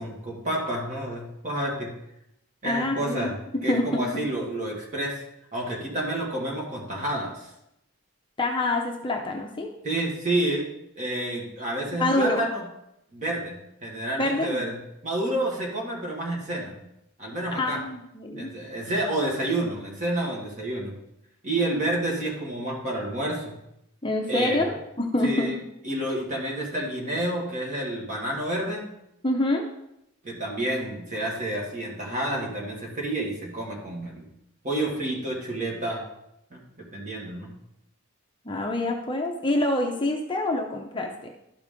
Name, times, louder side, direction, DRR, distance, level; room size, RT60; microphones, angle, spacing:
voice 1, 0.0-1.9 2.6-5.3 5.5-7.5 9.8-10.7 11.0-12.6 13.1-14.8 15.0-16.7 17.2-17.8 18.4-20.9 21.4-23.5 24.3-24.7 25.2-25.6 25.8-28.9 30.2-34.3 34.6-36.0 36.5-37.5, right 1 dB, 35° right, -2 dB, 1.9 m, -29 dB
voice 2, 2.6-3.3 3.7-4.2 8.4-9.7 12.0-12.5 14.2-14.7 17.5-18.5 24.0-25.5 29.2-29.6 38.5-41.3, left 1 dB, 25° left, 2 dB, 0.6 m, -26 dB
12.0 x 4.8 x 3.7 m, 0.83 s
head